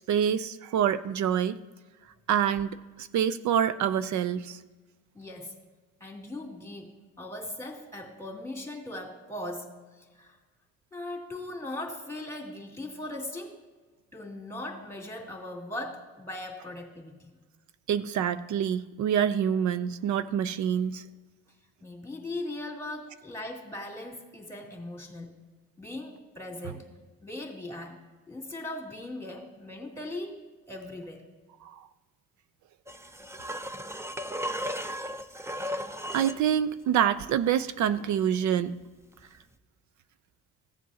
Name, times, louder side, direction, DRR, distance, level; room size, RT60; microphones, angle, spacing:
voice 1, 0.1-1.6 2.3-4.6 17.9-21.0 31.6-31.8 36.1-38.8, right 9 dB, 70° right, 12 dB, 0.5 m, -26 dB
voice 2, 5.1-5.5 6.0-10.4 10.9-13.6 14.1-17.3 21.8-25.3 25.8-26.9 27.2-28.0 28.3-31.3, left 1 dB, 10° left, -1 dB, 2.3 m, -39 dB
sound 1, 32.9-36.4 39.3-39.4, equal, 10° right, 0.5 m, -35 dB
15.5 x 7.5 x 2.8 m, 1.3 s
cardioid pair, 90°, 30 cm